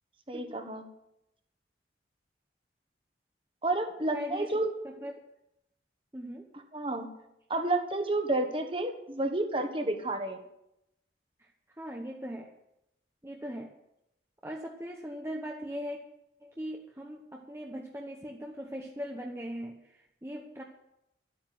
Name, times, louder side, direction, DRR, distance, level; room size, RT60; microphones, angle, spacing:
voice 1, 0.3-0.8 3.6-4.7 6.7-7.1 7.5-10.4, right 2 dB, 30° right, 6 dB, 1.4 m, -30 dB
voice 2, 4.1-4.5 4.8-5.2 6.1-6.5 11.8-12.5 13.2-13.7 14.4-16.0 16.4-20.6, equal, 15° right, 1 dB, 0.9 m, -40 dB
12.0 x 8.9 x 7.7 m, 0.85 s
head